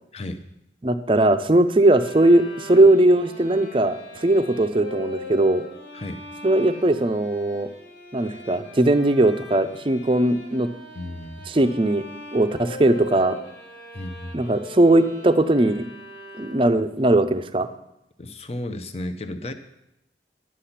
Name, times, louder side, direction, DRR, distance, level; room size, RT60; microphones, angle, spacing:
voice 1, 0.1-0.4 5.9-6.2 10.9-11.5 13.9-14.5 18.2-19.5, left 1 dB, 35° left, 8 dB, 0.7 m, -33 dB
voice 2, 0.8-5.6 6.4-7.7 8.1-10.7 11.5-12.0 12.3-13.4 14.3-15.8 16.4-17.7, right 1 dB, 30° right, 10 dB, 0.5 m, -19 dB
sound 1, 1.8-16.9, left 1 dB, 85° left, 2.8 m, -41 dB
11.0 x 8.4 x 5.8 m, 0.83 s
head